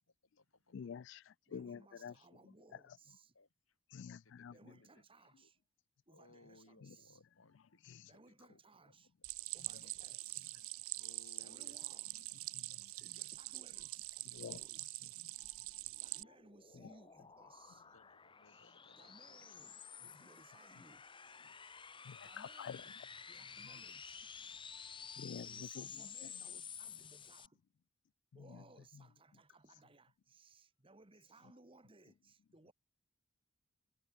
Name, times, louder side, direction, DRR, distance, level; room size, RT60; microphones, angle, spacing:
voice 1, 0.2-2.3 3.3-5.1 5.4-5.5 6.1-8.9 9.7-10.1 10.9-12.3 12.9-13.6 14.7-14.8 15.7-15.9 16.7-16.8 17.9-19.6, left 2 dB, 75° left, 4.7 m, -67 dB
voice 2, 0.7-2.1 2.7-3.0 3.9-4.7 6.8-6.9 7.8-8.1 9.7-9.8 11.3-11.4 12.5-12.9 14.3-15.0 15.3-15.6 16.7-16.9 22.0-22.8 23.6-23.8 24.7-26.3 28.5-28.6 28.9-29.0, left 7 dB, 55° left, 0.3 m, -50 dB
voice 3, 1.5-3.3 4.5-5.6 6.1-7.2 8.1-9.1 9.5-10.5 11.4-12.1 13.0-14.8 16.0-17.9 19.0-19.8 20.0-21.0 22.2-22.9 23.3-24.3 25.4-27.6 28.3-32.7, right 3 dB, 25° right, 1.5 m, -63 dB
Stream, 9.2-16.2, right 19 dB, 85° right, 0.7 m, -45 dB
sound 1, 15.6-27.5, left 7 dB, 25° left, 1.4 m, -52 dB
head